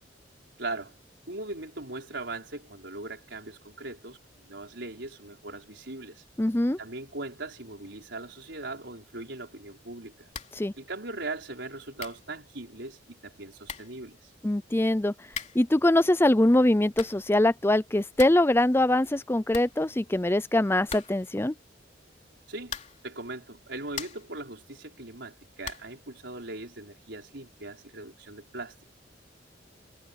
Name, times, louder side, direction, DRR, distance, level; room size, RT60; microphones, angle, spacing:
voice 1, 0.6-0.9 1.3-6.2 6.8-10.3 10.7-14.3 22.5-22.7 23.0-28.8, right 2 dB, 70° right, 5.0 m, -39 dB
voice 2, 6.4-6.8 10.6-10.7 14.4-15.1 15.5-21.5, left 1 dB, 15° left, 0.5 m, -23 dB
sound 1, 10.3-10.7 10.9-11.0 11.7-11.8 12.0-12.3 13.3-13.4 13.6-14.0 15.3-15.7 16.7-17.3 17.7-17.8 18.0-18.5 18.8-18.9 19.1-19.2 19.5-20.3 20.9-21.4 22.6-23.1 23.6-24.4 25.6-26.0, left 6 dB, 40° left, 3.2 m, -41 dB
head